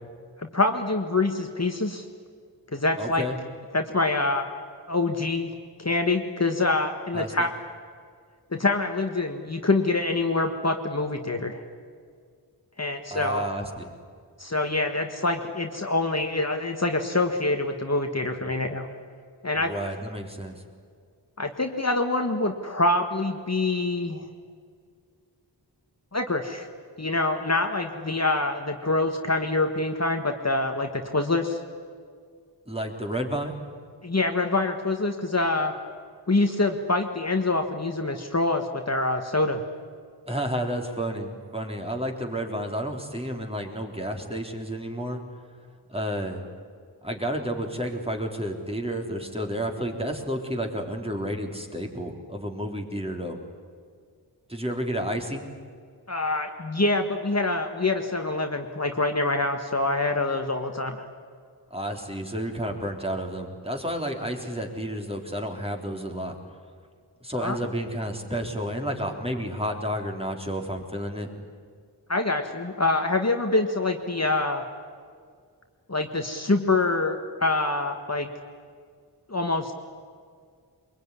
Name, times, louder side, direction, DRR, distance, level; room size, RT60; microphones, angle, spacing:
voice 1, 0.4-2.0 2.7-3.2 3.7-4.5 4.9-5.5 5.8-7.5 8.5-11.6 12.8-13.5 14.4-18.9 19.4-19.7 21.4-24.2 26.1-26.7 27.0-31.6 34.0-35.7 36.3-39.6 56.1-61.0 67.4-67.6 72.1-74.7 75.9-78.3 79.3-79.7, left 2 dB, 35° left, 4 dB, 1.7 m, -25 dB
voice 2, 3.0-3.4 7.1-7.5 13.1-13.9 19.5-20.6 32.6-33.5 40.3-45.2 45.9-46.4 47.0-53.4 54.5-55.4 61.7-66.3 67.2-71.3, equal, 15° right, 2 dB, 3.5 m, -31 dB
23.0 x 22.5 x 9.9 m, 2.1 s
wide cardioid pair, 65°, 42 cm